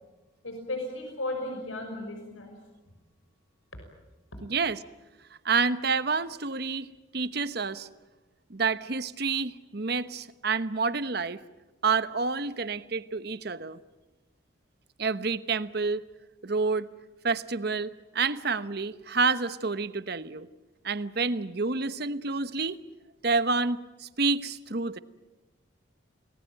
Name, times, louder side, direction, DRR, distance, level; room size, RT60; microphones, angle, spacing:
voice 1, 0.4-2.5 4.3-4.4, left 2 dB, 85° left, 4 dB, 5.9 m, -35 dB
voice 2, 4.4-4.8 5.4-7.9 8.5-11.4 11.8-13.8 15.0-16.0 16.4-16.9 17.2-20.5 20.8-22.8 23.2-25.0, right 4 dB, 55° right, 14 dB, 1.0 m, -28 dB
28.5 x 20.0 x 9.1 m, 1.2 s
head